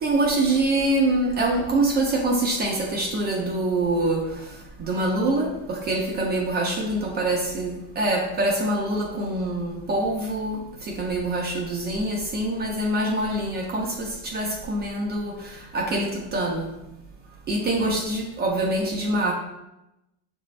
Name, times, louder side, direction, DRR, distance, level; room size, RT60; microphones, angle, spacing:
voice 1, 0.0-4.2 4.8-15.3 15.7-16.7 17.5-19.3, right 2 dB, 20° right, -1 dB, 0.5 m, -25 dB
6.6 x 2.6 x 3.1 m, 0.92 s
supercardioid pair, 135°, 45 cm